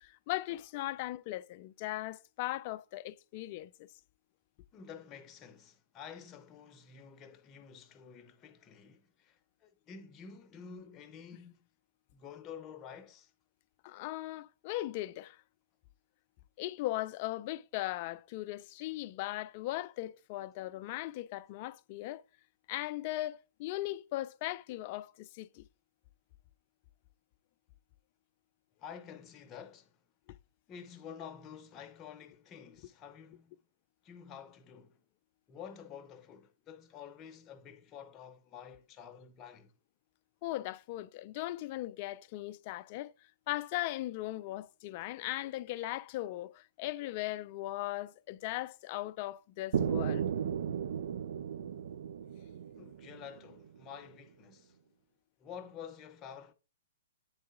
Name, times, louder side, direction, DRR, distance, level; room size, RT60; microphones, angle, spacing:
voice 1, 0.0-3.7 13.8-15.4 16.6-22.2 22.7-25.6 40.4-43.1 43.5-50.3, left 16 dB, 40° left, 0.3 m, -38 dB
voice 2, 4.7-11.7 12.1-13.3 28.8-30.0 30.7-33.5 34.0-35.0 35.5-39.7 52.8-54.8 55.4-56.5, left 7 dB, 25° left, 0.7 m, -50 dB
sound 1, 49.7-53.6, right 8 dB, 65° right, 0.5 m, -35 dB
8.8 x 3.8 x 3.7 m
hypercardioid pair, 140°, 0 cm